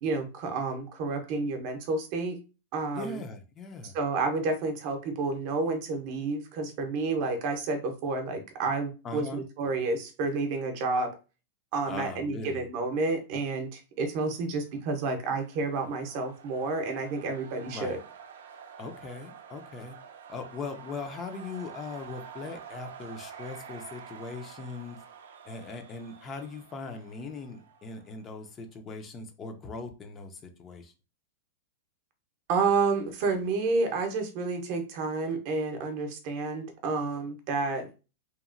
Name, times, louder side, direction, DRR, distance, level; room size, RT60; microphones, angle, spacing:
voice 1, 0.0-2.4 2.7-3.2 3.8-11.1 11.7-18.0 32.5-37.9, right 3 dB, 45° right, 6 dB, 0.7 m, -30 dB
voice 2, 2.9-3.9 9.0-9.4 11.9-12.6 17.7-18.0 18.8-20.0 20.3-25.0 25.4-30.9, left 4 dB, 25° left, 6 dB, 0.4 m, -40 dB
sound 1, 14.5-28.3, right 7 dB, 80° right, 0.4 m, -48 dB
2.8 x 2.3 x 2.5 m, 0.32 s
supercardioid pair, 150°, 0 cm